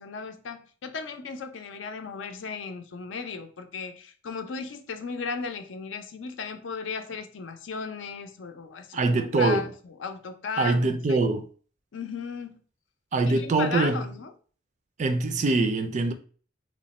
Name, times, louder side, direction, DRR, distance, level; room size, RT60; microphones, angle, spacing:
voice 1, 0.0-11.2 11.9-12.6 13.3-14.3, left 5 dB, 70° left, 0.5 m, -36 dB
voice 2, 8.9-9.6 10.6-11.5 13.1-14.0 15.0-16.1, right 3 dB, 40° right, 0.4 m, -23 dB
3.1 x 2.1 x 4.0 m
head